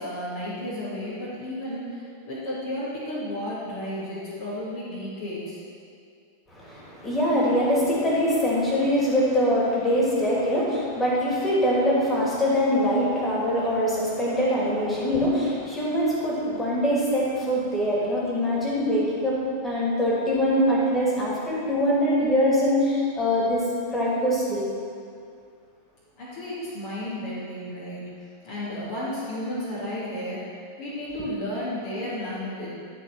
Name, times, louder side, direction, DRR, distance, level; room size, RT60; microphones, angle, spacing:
voice 1, 0.0-5.6 26.2-28.1 28.4-32.7, left 1 dB, 50° left, -9 dB, 2.5 m, -33 dB
voice 2, 6.5-23.7 23.9-24.6, equal, 10° left, -6 dB, 2.6 m, -23 dB
12.5 x 4.7 x 6.2 m, 2.3 s
figure-of-eight pair, 90°, 0 cm